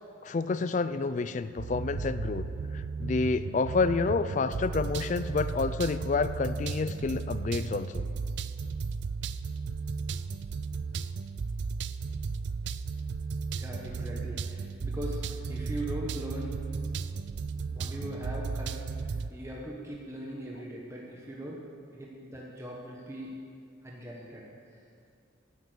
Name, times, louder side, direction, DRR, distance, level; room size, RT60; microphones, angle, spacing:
voice 1, 0.2-2.5 2.7-8.0, left 4 dB, 40° left, 13 dB, 0.3 m, -29 dB
sound 1, 1.6-19.3, right 4 dB, 60° right, 0.4 m, -35 dB
voice 2, 13.6-16.6 17.7-21.6 21.9-23.3 23.8-24.4, equal, 15° right, -3 dB, 1.2 m, -40 dB
11.0 x 7.8 x 8.2 m, 2.3 s
head